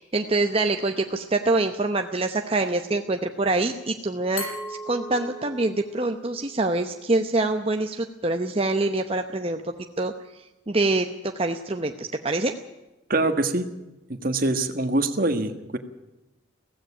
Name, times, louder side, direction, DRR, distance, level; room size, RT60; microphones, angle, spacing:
voice 1, 0.0-10.1 10.7-12.5, right 2 dB, 30° right, 5 dB, 0.8 m, -25 dB
Glass, 4.4-7.2, equal, 85° left, 7.1 m, -38 dB
voice 2, 13.1-13.7 14.1-15.8, right 2 dB, 45° right, 8 dB, 1.6 m, -24 dB
16.5 x 16.0 x 10.0 m, 1.0 s
head